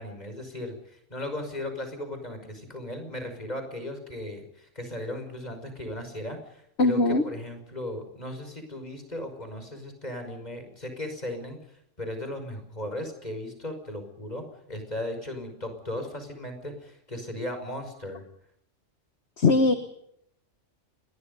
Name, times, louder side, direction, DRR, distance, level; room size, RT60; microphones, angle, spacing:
voice 1, 0.0-11.6 12.0-18.2, left 1 dB, 35° left, 6 dB, 5.9 m, -36 dB
voice 2, 6.8-7.2 19.4-19.7, left 3 dB, 60° left, 8 dB, 1.7 m, -20 dB
28.5 x 22.0 x 5.4 m, 0.73 s
omnidirectional pair, 1.3 m